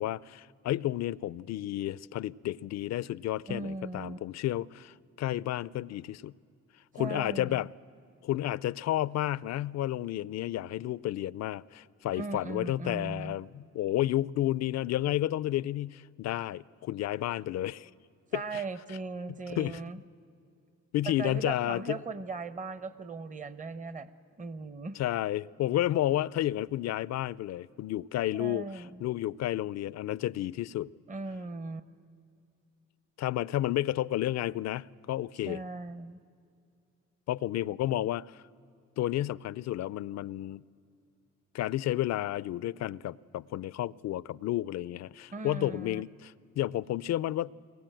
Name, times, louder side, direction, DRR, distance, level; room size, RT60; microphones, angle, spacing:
voice 1, 0.0-6.3 6.9-7.7 8.2-17.9 18.3-18.6 19.3-19.8 20.9-22.0 25.0-30.9 33.2-35.6 37.3-38.4 39.0-40.6 41.5-47.5, left 13 dB, 60° left, 0.5 m, -31 dB
voice 2, 3.5-4.2 6.9-7.6 12.1-13.4 18.3-20.0 21.1-24.1 24.4-25.0 28.3-29.0 31.1-31.9 35.4-36.2 45.3-46.0, right 3 dB, 25° right, 0.8 m, -38 dB
23.0 x 18.5 x 9.0 m
cardioid pair, 75°, 30 cm